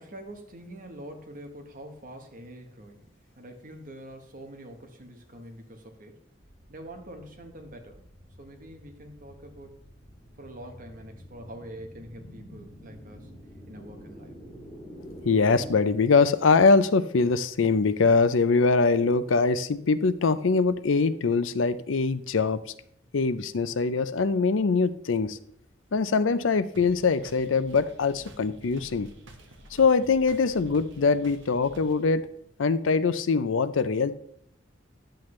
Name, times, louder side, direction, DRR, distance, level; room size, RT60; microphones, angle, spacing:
voice 1, 0.0-3.1 3.4-6.2 6.7-9.7 10.4-13.3 13.7-14.3, right 1 dB, 45° right, 4 dB, 1.3 m, -45 dB
sound 1, 6.4-15.7, equal, 30° left, 2.5 m, -48 dB
voice 2, 15.2-22.6 23.1-25.4 25.9-29.1 29.7-32.3 32.6-34.1, left 4 dB, 90° left, 14 dB, 0.6 m, -23 dB
sound 2, 26.7-32.1, right 1 dB, 70° right, 1.2 m, -49 dB
10.0 x 7.7 x 3.2 m, 0.68 s
head